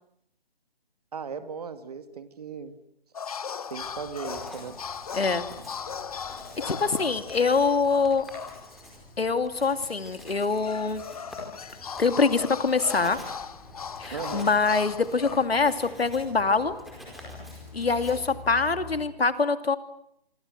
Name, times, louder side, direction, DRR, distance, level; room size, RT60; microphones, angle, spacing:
voice 1, 1.1-2.8 3.7-4.8 14.1-14.5, right 6 dB, 40° right, 11 dB, 2.3 m, -37 dB
sound 1, 3.1-8.9 9.2-9.3 10.2-15.5, left 6 dB, 40° left, 1.0 m, -38 dB
Writing, 3.7-19.1, left 1 dB, ahead, 4.6 m, -46 dB
voice 2, 5.1-5.5 6.6-8.2 9.2-11.0 12.0-13.2 14.0-16.7 17.7-19.8, left 4 dB, 85° left, 10 dB, 2.7 m, -24 dB
26.0 x 25.5 x 8.0 m, 0.75 s
hypercardioid pair, 165°, 30 cm